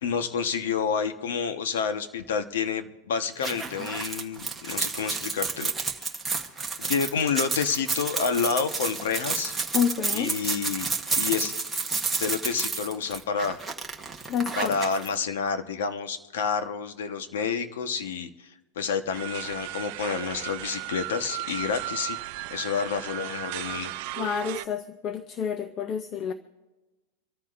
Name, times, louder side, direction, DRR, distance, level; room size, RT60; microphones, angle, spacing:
voice 1, 0.0-5.7 6.0-6.1 6.8-9.5 10.1-10.9 11.2-11.5 12.2-13.6 14.5-22.2 22.5-23.9, left 6 dB, 85° left, 1.2 m, -29 dB
sound 1, 3.4-15.1, right 4 dB, 5° right, 1.1 m, -30 dB
voice 2, 9.7-10.3 14.3-14.7 24.2-26.3, left 8 dB, 25° left, 0.5 m, -29 dB
sound 2, 19.1-24.6, right 16 dB, 45° right, 0.6 m, -35 dB
26.5 x 13.5 x 2.6 m
supercardioid pair, 170°, 0 cm